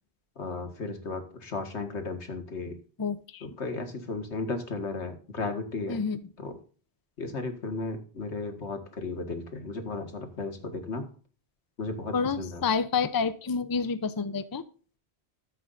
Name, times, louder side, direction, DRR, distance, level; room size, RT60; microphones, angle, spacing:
voice 1, 0.4-2.8 3.6-6.0 6.4-6.6 7.2-11.0 11.8-12.6, left 3 dB, 85° left, 6 dB, 2.0 m, -35 dB
voice 2, 3.0-3.6 5.9-6.2 12.1-14.6, left 5 dB, 25° left, 12 dB, 0.5 m, -29 dB
13.5 x 7.8 x 2.6 m, 0.38 s
omnidirectional pair, 1.1 m